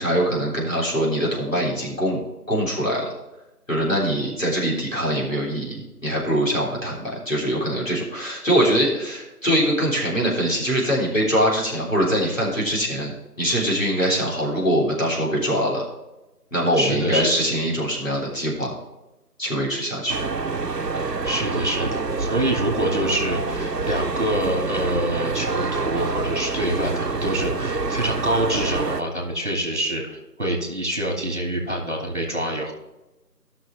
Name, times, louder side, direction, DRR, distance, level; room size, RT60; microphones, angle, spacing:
voice 1, 0.0-2.2 2.5-3.1 3.7-15.8 16.5-18.7 19.4-20.2, equal, 55° left, -4 dB, 3.6 m, -23 dB
voice 2, 16.7-17.4 20.9-32.7, right 1 dB, 45° right, 0 dB, 2.5 m, -26 dB
sound 1, 20.1-29.0, right 4 dB, 90° right, 0.9 m, -27 dB
15.0 x 6.2 x 3.3 m, 1.0 s
figure-of-eight pair, 180°, 48 cm